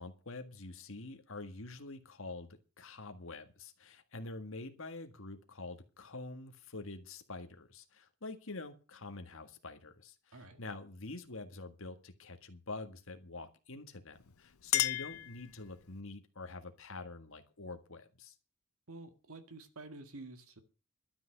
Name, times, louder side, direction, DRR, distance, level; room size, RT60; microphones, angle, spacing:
voice 1, 0.0-18.3, left 2 dB, 65° left, 7 dB, 1.7 m, -46 dB
Chink clink, 14.1-16.0, left 16 dB, 80° left, 0.7 m, -35 dB
voice 2, 18.9-20.6, right 2 dB, 75° right, 7 dB, 1.9 m, -49 dB
12.5 x 6.3 x 9.3 m, 0.33 s
head